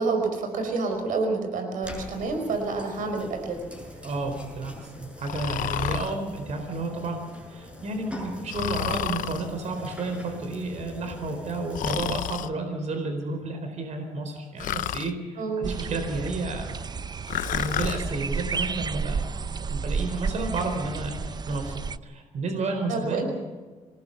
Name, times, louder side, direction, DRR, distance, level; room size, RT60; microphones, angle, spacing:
voice 1, 0.0-3.7 15.4-15.7 22.9-23.3, right 3 dB, 80° right, 5 dB, 5.0 m, -28 dB
sound 1, 1.8-11.9, left 1 dB, 10° right, 7.2 m, -43 dB
voice 2, 4.0-7.2 7.5-16.7 17.5-19.3 19.7-23.2, right 3 dB, 60° right, 5 dB, 4.3 m, -31 dB
Breathing, 5.2-6.1 8.5-9.5 11.7-12.5 14.6-15.1 17.3-18.0, left 11 dB, 80° left, 0.8 m, -30 dB
sound 2, 15.6-22.0, right 5 dB, 30° right, 0.6 m, -32 dB
26.5 x 19.5 x 5.8 m, 1.4 s
cardioid pair, 115°, 13 cm